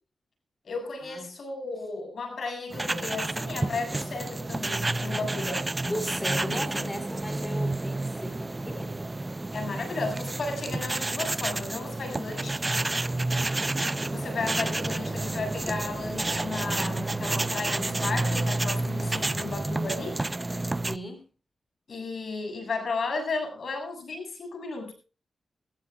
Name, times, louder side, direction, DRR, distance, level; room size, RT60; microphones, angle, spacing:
voice 1, 0.6-5.7 9.5-12.6 14.0-20.2 21.9-24.9, left 3 dB, 65° left, 5 dB, 7.0 m, -34 dB
sound 1, 2.7-21.0, right 2 dB, 25° right, 0.7 m, -30 dB
voice 2, 5.8-9.1 20.8-21.2, equal, 15° left, 7 dB, 4.5 m, -36 dB
21.0 x 16.0 x 2.4 m, 0.33 s
cardioid pair, 55°, 0 cm